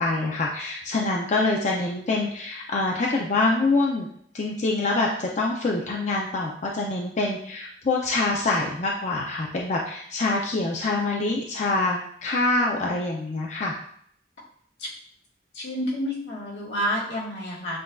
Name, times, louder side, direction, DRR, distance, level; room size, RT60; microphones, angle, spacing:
voice 1, 0.0-4.1 4.3-13.8, left 2 dB, 40° left, -1 dB, 0.5 m, -25 dB
voice 2, 15.5-17.8, equal, 80° left, -5 dB, 1.5 m, -29 dB
7.5 x 2.5 x 2.3 m, 0.65 s
head